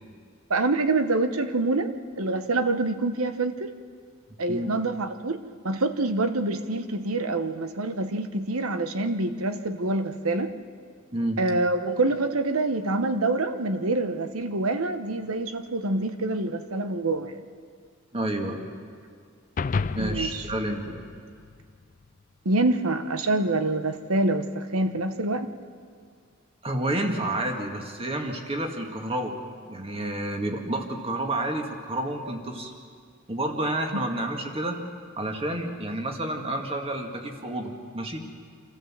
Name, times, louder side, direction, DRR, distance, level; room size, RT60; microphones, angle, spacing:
voice 1, 0.5-1.9 2.2-3.7 4.4-10.5 11.4-17.3 20.0-20.4 22.4-25.5 33.9-34.1, right 2 dB, 85° right, 9 dB, 1.1 m, -26 dB
voice 2, 18.1-18.7 19.8-21.0 26.6-29.4 29.7-32.7 33.3-34.8 35.2-38.2, right 1 dB, 25° right, 3 dB, 2.0 m, -30 dB
sound 1, 19.6-22.1, left 4 dB, 40° left, 0.4 m, -32 dB
27.0 x 14.0 x 7.5 m, 2.2 s
head